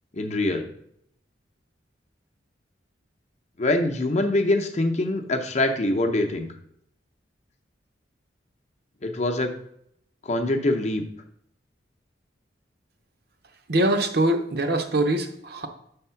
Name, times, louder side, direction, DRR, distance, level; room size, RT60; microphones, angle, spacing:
voice 1, 0.1-0.7 3.6-6.5 9.0-9.5 10.2-11.1, left 2 dB, 40° left, 4 dB, 0.7 m, -24 dB
voice 2, 13.7-15.7, right 1 dB, 60° right, 6 dB, 0.7 m, -23 dB
6.5 x 3.6 x 5.6 m, 0.71 s
head